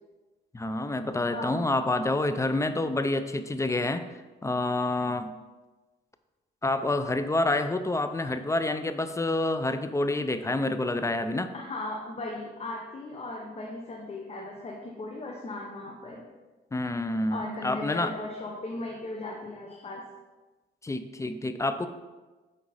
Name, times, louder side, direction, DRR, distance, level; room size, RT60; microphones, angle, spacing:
voice 1, 0.5-4.1 4.4-5.4 6.6-11.5 16.7-18.1 20.8-21.9, left 2 dB, 15° left, 10 dB, 0.5 m, -28 dB
voice 2, 1.3-1.6 11.5-16.2 17.3-20.0, left 2 dB, 30° left, -1 dB, 1.0 m, -37 dB
8.5 x 4.1 x 4.1 m, 1.2 s
cardioid pair, 90°, 20 cm